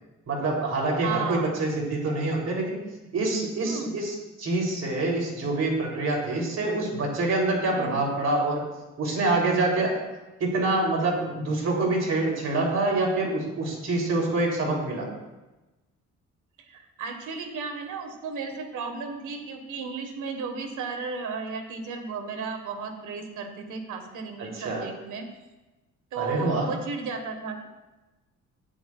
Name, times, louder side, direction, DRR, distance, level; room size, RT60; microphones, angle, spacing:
voice 1, 0.3-2.8 3.1-8.6 9.0-10.1 10.4-15.1 24.4-24.8 26.2-26.7, right 2 dB, 60° right, -1 dB, 3.3 m, -26 dB
voice 2, 1.0-1.5 3.6-4.0 7.8-8.0 16.7-25.3 26.1-27.7, right 5 dB, 80° right, 5 dB, 1.5 m, -34 dB
12.5 x 10.0 x 2.4 m, 1.1 s
cardioid pair, 90°, 30 cm